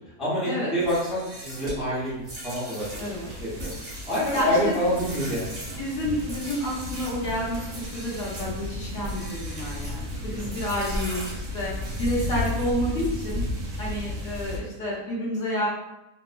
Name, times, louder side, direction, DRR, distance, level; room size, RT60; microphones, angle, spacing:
voice 1, 0.2-2.9 3.2-3.7 4.1-5.6 10.1-10.5, equal, ahead, -10 dB, 0.6 m, -27 dB
sound 1, 0.8-7.2 7.7-8.5 9.0-10.0 10.5-12.9, right 1 dB, 40° right, 1.1 m, -40 dB
sound 2, 2.8-14.6, left 1 dB, 70° right, 1.0 m, -34 dB
voice 2, 3.0-3.3 4.3-4.7 5.8-13.4 13.8-15.7, equal, 65° left, -5 dB, 1.0 m, -29 dB
2.9 x 2.0 x 2.4 m, 0.94 s
omnidirectional pair, 1.5 m